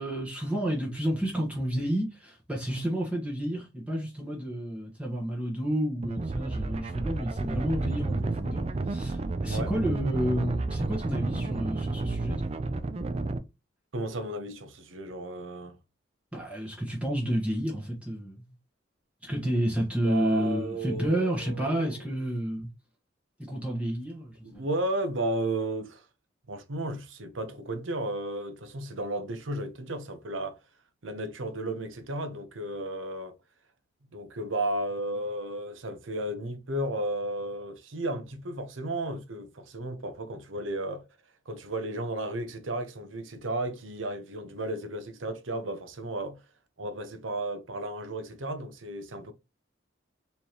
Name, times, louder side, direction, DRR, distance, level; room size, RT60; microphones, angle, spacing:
voice 1, 0.0-12.5 16.3-18.4 19.2-22.7 23.5-24.7, equal, 5° right, 1.0 m, -30 dB
sound 1, 6.0-13.4, right 3 dB, 30° right, 0.4 m, -31 dB
voice 2, 13.9-15.8 20.0-22.1 24.4-26.1 26.5-30.6 31.0-33.3 34.1-41.0 41.5-46.4 46.8-49.3, right 1 dB, 80° right, 0.8 m, -34 dB
4.3 x 3.3 x 2.9 m
head